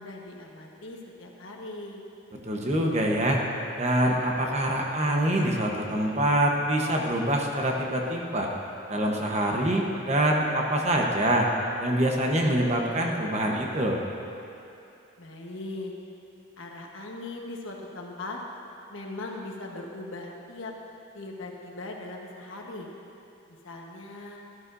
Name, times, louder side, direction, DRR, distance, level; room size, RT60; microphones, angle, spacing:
voice 1, 0.0-2.0 15.2-15.9 16.6-18.4 18.9-20.7 21.1-22.9 23.5-24.4, left 2 dB, 80° left, 0 dB, 1.2 m, -39 dB
voice 2, 2.4-3.4 3.8-8.5 8.9-11.5 11.8-14.0, right 1 dB, 35° right, 0 dB, 1.0 m, -25 dB
13.0 x 12.5 x 2.6 m, 2.8 s
head